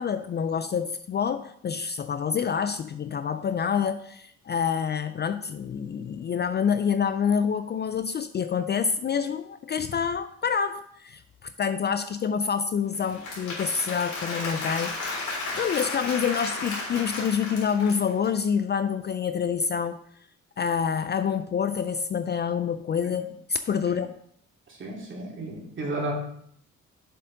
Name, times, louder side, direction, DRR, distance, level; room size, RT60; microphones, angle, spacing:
voice 1, 0.0-15.2 15.5-20.0 20.6-24.1, left 7 dB, 35° left, 11 dB, 0.4 m, -27 dB
Applause / Crowd, 12.9-18.2, left 3 dB, 75° left, 3.8 m, -33 dB
voice 2, 24.8-26.1, right 2 dB, 40° right, -2 dB, 2.7 m, -33 dB
7.4 x 6.8 x 3.8 m, 0.67 s
cardioid pair, 90°, 30 cm